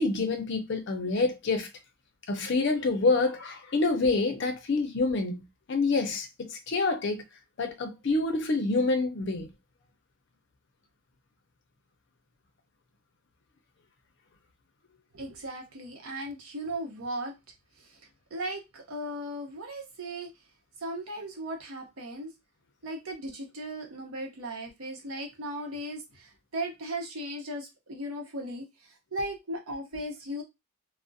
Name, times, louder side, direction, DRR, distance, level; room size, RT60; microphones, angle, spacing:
voice 1, 0.0-1.7 2.3-7.2 7.6-9.5, left 3 dB, 50° left, 0.5 m, -27 dB
voice 2, 15.1-17.3 17.8-18.0 18.3-20.3 20.8-22.3 22.8-30.4, right 1 dB, 80° right, 0.7 m, -37 dB
2.4 x 2.0 x 2.5 m
head